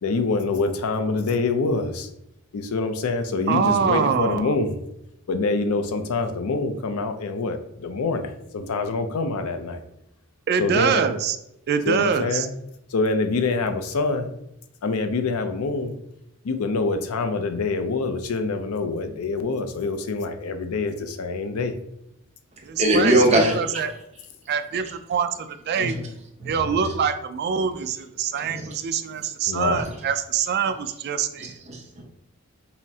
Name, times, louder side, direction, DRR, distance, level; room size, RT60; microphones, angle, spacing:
voice 1, 0.0-2.1 2.5-4.8 5.3-9.8 10.6-11.0 11.9-12.5 12.9-14.3 14.8-15.9 16.4-21.8 23.0-23.6 29.5-29.9, left 3 dB, 90° left, 8 dB, 0.5 m, -25 dB
voice 2, 3.5-4.5 10.5-11.4 11.7-12.5 22.6-23.2 23.5-23.9 24.5-26.0 26.5-31.6, right 7 dB, 50° right, 9 dB, 0.3 m, -24 dB
voice 3, 22.8-23.6 25.8-26.1 26.4-26.6 28.3-28.8 29.2-29.3 29.7-29.9 31.4-32.0, right 1 dB, 30° right, 0 dB, 0.8 m, -22 dB
5.5 x 2.1 x 2.7 m, 0.81 s
head